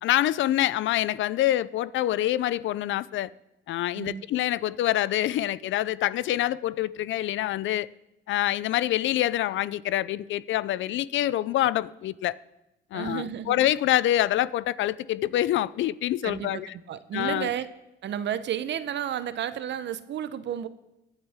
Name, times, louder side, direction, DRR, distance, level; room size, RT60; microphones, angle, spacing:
voice 1, 0.0-3.3 3.7-7.9 8.3-12.3 12.9-16.7 17.1-17.5, left 13 dB, 75° left, 0.5 m, -26 dB
voice 2, 4.0-4.3 12.9-13.6 16.2-16.6 16.9-17.7 18.0-20.7, right 9 dB, 65° right, 0.8 m, -32 dB
23.5 x 9.0 x 3.6 m
cardioid pair, 90°, 20 cm